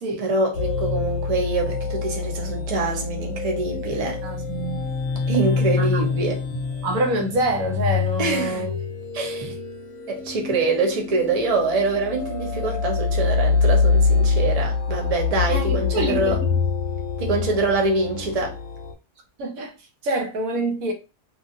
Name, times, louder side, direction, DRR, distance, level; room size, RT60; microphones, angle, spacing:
voice 1, 0.2-4.2 5.3-6.4 8.2-8.7 9.1-9.5 10.1-16.4 17.2-18.6, right 3 dB, 45° right, 0.5 m, -24 dB
sound 1, 0.5-18.9, left 5 dB, 60° left, 0.9 m, -25 dB
voice 2, 4.2-4.9 5.8-6.0 6.8-8.7 12.5-12.6 15.5-16.6 19.4-19.7 20.0-20.9, right 1 dB, 65° right, 1.1 m, -26 dB
3.0 x 2.5 x 2.6 m
omnidirectional pair, 1.7 m